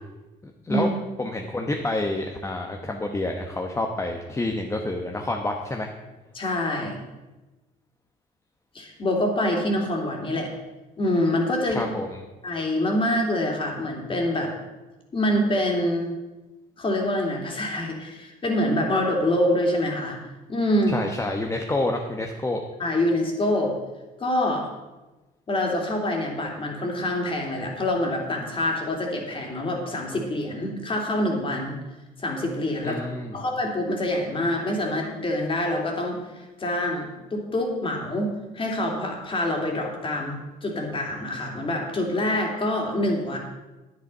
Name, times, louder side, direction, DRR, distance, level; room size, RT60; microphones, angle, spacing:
voice 1, 0.4-0.9 1.2-5.9 11.7-12.2 20.9-22.6 32.8-33.4, left 2 dB, 15° left, 2 dB, 1.0 m, -28 dB
voice 2, 6.3-7.0 8.7-10.5 11.0-11.9 12.4-14.5 15.1-16.1 16.8-20.2 20.5-20.9 22.8-23.7 24.2-24.7 25.5-31.8 32.2-33.0 33.3-43.4, left 1 dB, 30° left, 1 dB, 2.9 m, -26 dB
9.8 x 9.6 x 5.5 m, 1.1 s
cardioid pair, 110°, 17 cm